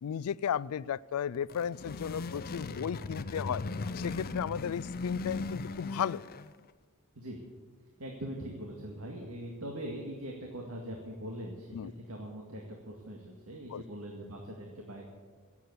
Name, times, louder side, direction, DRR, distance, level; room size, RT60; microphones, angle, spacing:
voice 1, 0.0-3.6 3.9-6.2 11.7-11.9 13.7-13.8, left 8 dB, 85° left, 0.4 m, -34 dB
sound 1, 1.3-6.7, left 3 dB, 45° left, 0.6 m, -38 dB
voice 2, 8.0-15.0, right 1 dB, 80° right, 2.0 m, -42 dB
17.0 x 8.4 x 8.0 m
head